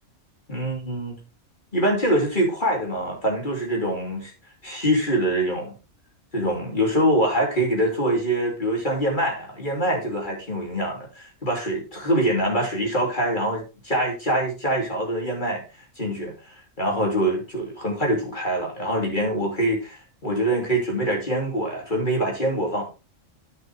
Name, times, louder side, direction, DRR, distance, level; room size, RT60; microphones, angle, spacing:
voice 1, 0.5-1.2 1.7-4.3 4.6-5.7 6.3-15.6 16.0-22.8, right 1 dB, 40° left, 3.3 m, -24 dB
11.0 x 6.6 x 3.5 m
omnidirectional pair, 1.3 m